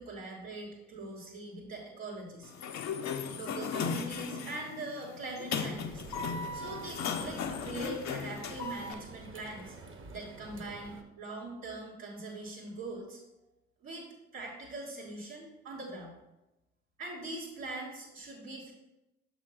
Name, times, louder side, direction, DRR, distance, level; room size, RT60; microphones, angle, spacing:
voice 1, 0.0-2.5 3.3-6.0 6.5-9.8 10.1-13.2 13.8-14.0 14.3-16.1 17.0-18.7, right 2 dB, 80° right, -9 dB, 1.7 m, -42 dB
Sliding door, 2.4-8.9, left 6 dB, 60° left, 0.7 m, -36 dB
sound 1, 5.7-11.0, right 3 dB, 40° right, 0.9 m, -49 dB
6.4 x 3.0 x 5.6 m, 0.96 s
hypercardioid pair, 45°, 32 cm